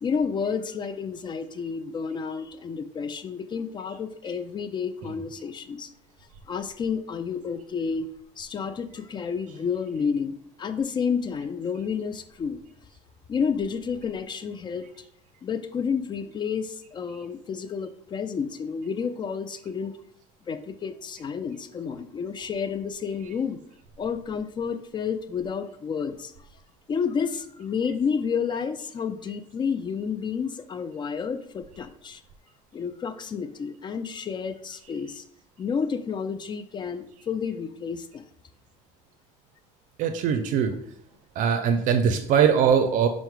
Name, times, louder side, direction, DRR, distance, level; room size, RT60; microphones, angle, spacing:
voice 1, 0.0-5.9 6.5-8.1 8.4-12.6 13.3-14.9 15.4-20.0 20.5-23.6 24.0-26.3 26.9-32.2 32.7-35.3 35.6-38.3, left 6 dB, 30° left, 10 dB, 0.4 m, -30 dB
voice 2, 40.0-40.7 41.4-43.1, right 7 dB, 65° right, 7 dB, 0.4 m, -21 dB
5.5 x 2.1 x 4.6 m, 0.70 s
cardioid pair, 100°, 14 cm